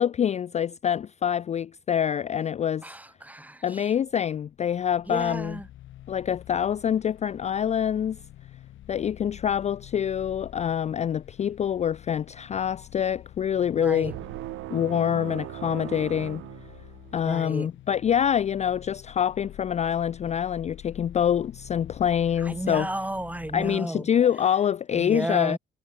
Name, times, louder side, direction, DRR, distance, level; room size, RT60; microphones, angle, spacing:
voice 1, 0.0-2.8 3.6-5.6 6.1-8.2 8.9-14.1 14.7-16.4 17.1-22.9 23.5-25.6, left 9 dB, 35° left, 0.3 m, -25 dB
voice 2, 2.8-3.9 5.1-5.7 13.7-14.1 17.2-17.7 22.4-24.1 25.0-25.6, right 1 dB, 10° right, 1.6 m, -33 dB
sound 1, 4.1-23.8, left 13 dB, 75° left, 1.3 m, -48 dB
sound 2, 14.0-17.4, right 17 dB, 90° right, 1.1 m, -38 dB
cardioid pair, 90°, 20 cm